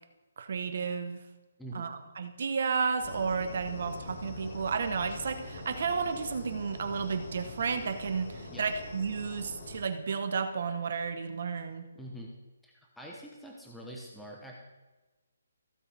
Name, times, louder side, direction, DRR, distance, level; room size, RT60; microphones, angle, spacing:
voice 1, 0.4-1.2 1.7-11.9, right 5 dB, 55° right, 7 dB, 1.2 m, -32 dB
sound 1, 3.0-9.8, left 2 dB, 55° left, 2.1 m, -44 dB
voice 2, 11.9-12.3 12.6-14.5, right 1 dB, ahead, -2 dB, 0.9 m, -45 dB
15.5 x 8.0 x 3.5 m, 1.2 s
hypercardioid pair, 165°, 0 cm